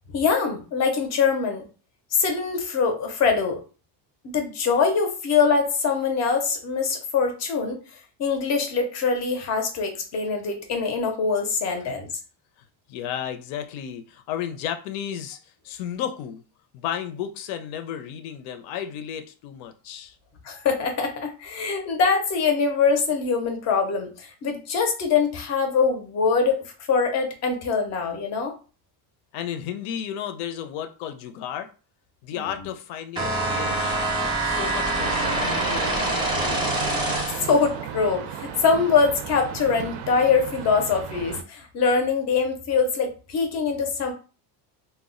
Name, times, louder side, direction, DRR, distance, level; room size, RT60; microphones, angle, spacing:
voice 1, 0.1-1.7 2.1-3.6 4.3-7.8 8.2-12.1 20.4-26.6 26.9-28.5 32.3-32.5 37.4-44.1, left 5 dB, 35° left, 0.5 m, -23 dB
voice 2, 12.9-16.4 16.7-20.2 29.3-31.7 32.2-36.9, left 9 dB, 75° left, 0.6 m, -33 dB
sound 1, 33.2-37.6, right 2 dB, 10° right, 0.4 m, -25 dB
sound 2, 35.0-41.4, right 9 dB, 65° right, 0.5 m, -34 dB
2.2 x 2.0 x 3.6 m
cardioid pair, 165°, 46 cm